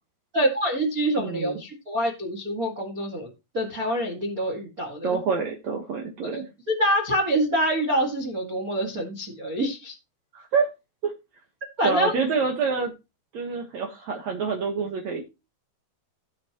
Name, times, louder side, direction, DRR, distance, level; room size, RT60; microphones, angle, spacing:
voice 1, 0.3-3.3 3.5-5.2 6.3-6.4 6.7-9.9 11.8-12.1, right 1 dB, 60° right, 3 dB, 0.9 m, -26 dB
voice 2, 1.2-1.6 5.0-6.5 10.3-10.7 11.0-11.1 11.8-12.9 13.3-15.2, right 5 dB, 85° right, 2 dB, 1.5 m, -27 dB
17.0 x 6.7 x 3.0 m, 0.27 s
omnidirectional pair, 5.4 m